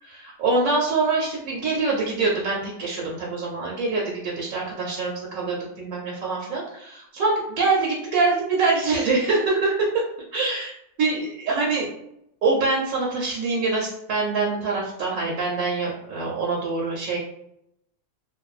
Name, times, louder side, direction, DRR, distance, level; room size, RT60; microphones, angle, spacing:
voice 1, 0.0-10.0 10.3-10.7 11.0-11.9 12.4-17.2, right 3 dB, 75° right, -3 dB, 1.0 m, -24 dB
2.6 x 2.2 x 2.3 m, 0.79 s
omnidirectional pair, 1.5 m